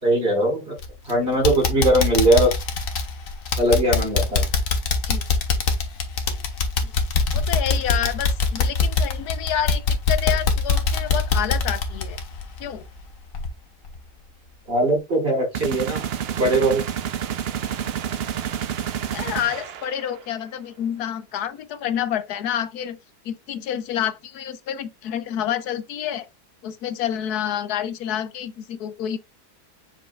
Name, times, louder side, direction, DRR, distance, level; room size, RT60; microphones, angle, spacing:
voice 1, 0.0-0.8 1.0-2.6 3.6-4.5 14.7-16.0 16.4-16.8, right 1 dB, 40° right, 4.8 m, -20 dB
sound 1, 0.8-1.1 1.4-13.0 13.3-13.5 14.0-14.1, left 4 dB, 55° left, 1.5 m, -23 dB
voice 2, 7.3-12.2 12.6-12.9 19.1-23.0 23.2-26.3 26.6-29.2, left 10 dB, 75° left, 1.3 m, -28 dB
sound 2, 15.5-20.3, right 9 dB, 65° right, 0.6 m, -29 dB
7.2 x 6.0 x 2.3 m
omnidirectional pair, 1.7 m